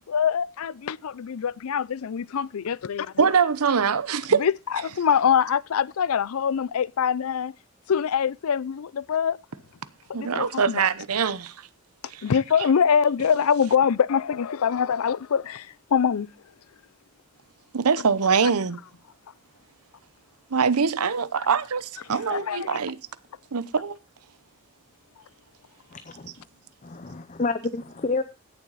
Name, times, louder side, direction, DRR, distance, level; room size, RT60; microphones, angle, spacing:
voice 1, 0.0-3.3 4.3-4.5 4.8-7.5 7.9-9.4 10.2-10.8 12.2-16.3 22.3-22.8, left 7 dB, 80° left, 0.4 m, -24 dB
voice 2, 3.2-4.4 10.1-11.7 12.1-12.2 17.7-18.8 20.5-23.0 23.5-24.0, right 6 dB, 85° right, 0.8 m, -23 dB
voice 3, 25.9-26.3 26.8-28.2, left 3 dB, 35° left, 0.6 m, -29 dB
16.0 x 7.1 x 4.0 m
head